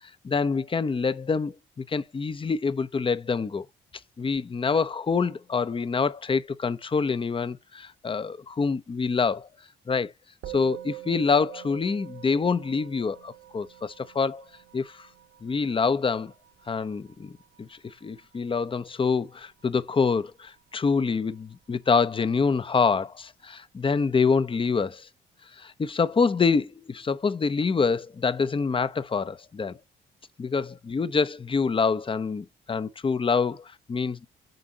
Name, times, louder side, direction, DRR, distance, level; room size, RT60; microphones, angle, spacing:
voice 1, 0.2-3.7 4.2-9.5 9.9-10.1 10.5-14.4 14.7-15.1 15.4-16.3 16.7-17.3 17.6-25.1 25.6-29.8 30.4-34.3, left 5 dB, 25° left, 0.7 m, -26 dB
Musical instrument, 10.4-20.0, right 15 dB, 85° right, 1.9 m, -45 dB
7.9 x 5.0 x 2.9 m
cardioid pair, 90°, 20 cm